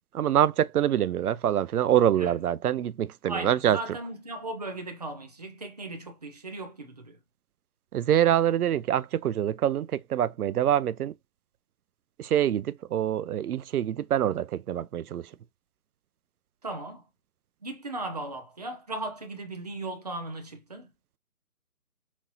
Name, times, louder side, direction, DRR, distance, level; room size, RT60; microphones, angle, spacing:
voice 1, 0.1-3.8 7.9-11.1 12.2-15.3, right 10 dB, 85° right, 0.5 m, -25 dB
voice 2, 3.3-7.2 16.6-17.0 17.6-20.9, right 2 dB, 30° right, 0.7 m, -37 dB
5.8 x 2.9 x 2.8 m
hypercardioid pair, 170°, 44 cm